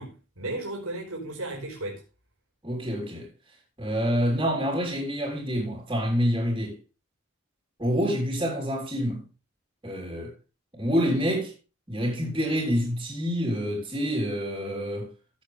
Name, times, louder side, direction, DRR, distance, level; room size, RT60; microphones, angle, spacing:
voice 1, 0.0-2.0, right 2 dB, 90° right, 4.4 m, -35 dB
voice 2, 2.6-3.3 3.8-6.8 7.8-9.3 9.8-10.3 10.7-11.5 11.9-15.1, equal, 20° right, 3.6 m, -27 dB
14.5 x 7.9 x 3.3 m
head